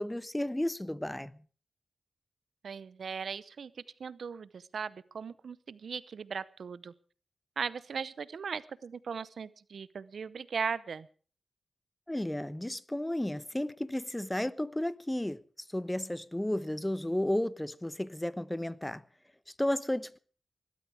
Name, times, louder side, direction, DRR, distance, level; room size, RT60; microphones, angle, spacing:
voice 1, 0.0-1.4 12.1-15.4 15.7-19.0 19.6-20.2, left 1 dB, 15° left, 1.0 m, -33 dB
voice 2, 2.6-3.7 4.0-6.9 7.6-11.1, right 6 dB, 75° right, 0.7 m, -38 dB
20.0 x 12.5 x 4.8 m
cardioid pair, 40°, 0 cm